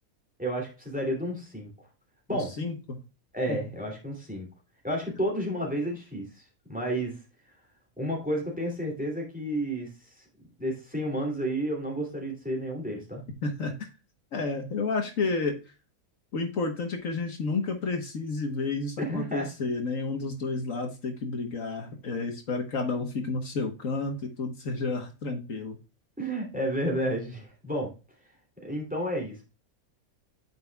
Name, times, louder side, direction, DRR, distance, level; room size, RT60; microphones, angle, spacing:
voice 1, 0.4-1.7 2.3-2.5 3.3-4.5 4.8-7.2 8.0-10.1 10.6-13.2 19.0-19.5 26.2-27.9 28.6-29.4, equal, 5° right, -1 dB, 2.5 m, -31 dB
voice 2, 2.3-3.0 3.5-3.6 13.4-13.9 14.3-15.7 16.3-25.8, left 3 dB, 65° left, 4 dB, 1.5 m, -31 dB
9.4 x 6.1 x 2.3 m, 0.31 s
omnidirectional pair, 1.5 m